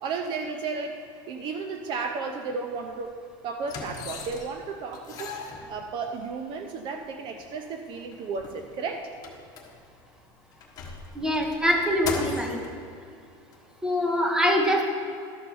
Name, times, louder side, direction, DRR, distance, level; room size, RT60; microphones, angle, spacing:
voice 1, 0.0-3.2 3.4-5.4 5.7-9.1, right 4 dB, 40° right, 5 dB, 0.6 m, -33 dB
sound 1, 2.8-2.9 3.6-4.6 4.9-6.3 7.0-7.1 7.4-7.5 7.9-10.1 10.5-12.7 13.5-13.6, left 4 dB, 30° left, 1.3 m, -37 dB
voice 2, 11.1-12.6 13.8-14.8, equal, 5° right, 1 dB, 1.0 m, -24 dB
12.5 x 4.4 x 6.9 m, 2.3 s
cardioid pair, 155°, 12 cm